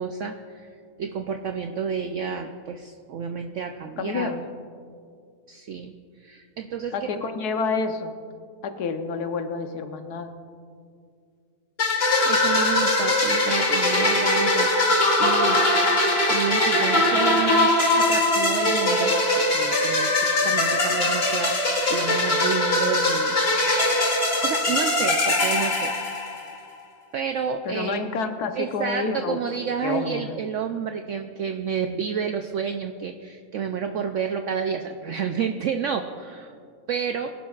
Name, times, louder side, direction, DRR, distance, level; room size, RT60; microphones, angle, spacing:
voice 1, 0.0-4.3 5.5-7.3 12.2-15.6 16.3-23.4 24.4-25.9 26.5-26.6 27.1-28.1 28.5-36.5 36.9-37.3, right 7 dB, 65° right, 6 dB, 0.8 m, -30 dB
voice 2, 4.0-4.4 6.9-8.2 8.6-10.3 27.7-29.4 29.8-30.4, left 4 dB, 80° left, 7 dB, 1.4 m, -29 dB
sound 1, 11.8-26.6, left 2 dB, 40° left, 1.8 m, -21 dB
23.0 x 11.5 x 2.4 m, 2.2 s
omnidirectional pair, 1.6 m